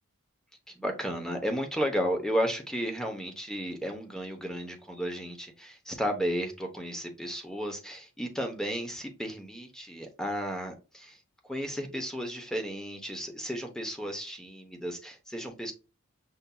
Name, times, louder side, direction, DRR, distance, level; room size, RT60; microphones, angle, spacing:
voice 1, 0.8-11.2 11.5-15.7, equal, 5° left, 0.7 m, -33 dB
6.7 x 2.6 x 2.2 m
head